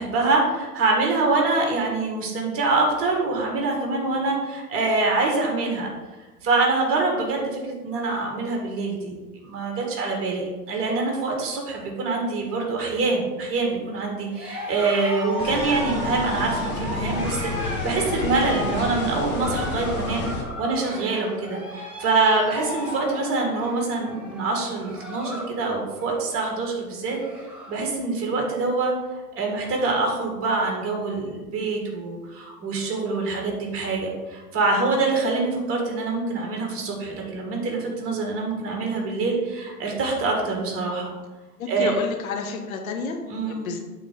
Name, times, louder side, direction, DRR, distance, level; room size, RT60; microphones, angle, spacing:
voice 1, 0.0-5.9 6.4-27.2 27.7-41.1 41.7-41.9 43.3-43.7, right 3 dB, 30° right, 0 dB, 2.0 m, -25 dB
Cheering, 14.3-25.6 25.9-26.3 26.7-26.8 27.0-27.8, equal, 5° right, 1.9 m, -35 dB
sound 1, 15.4-20.4, left 3 dB, 25° left, 1.1 m, -30 dB
voice 2, 41.6-43.2 43.5-43.8, left 4 dB, 65° left, 3 dB, 1.3 m, -30 dB
8.1 x 4.1 x 5.2 m, 1.2 s
figure-of-eight pair, 100°, 46 cm